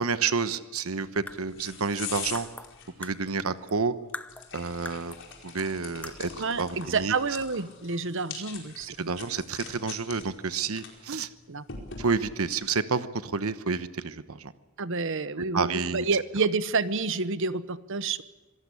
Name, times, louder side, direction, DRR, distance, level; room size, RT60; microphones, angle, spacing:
voice 1, 0.0-2.5 3.0-3.9 4.5-5.2 5.4-6.3 6.6-7.1 9.0-11.3 12.0-14.5 15.5-16.1, right 4 dB, 80° right, 13 dB, 1.1 m, -29 dB
sound 1, 1.0-12.5, left 6 dB, 60° left, 4.7 m, -44 dB
sound 2, 1.0-3.8 4.1-5.3 5.6-5.7 6.0-6.5, left 1 dB, 5° left, 0.7 m, -43 dB
voice 2, 6.4-9.1 11.1-11.6 14.8-18.2, right 4 dB, 60° right, 14 dB, 1.0 m, -29 dB
26.0 x 18.0 x 8.5 m, 1.2 s
head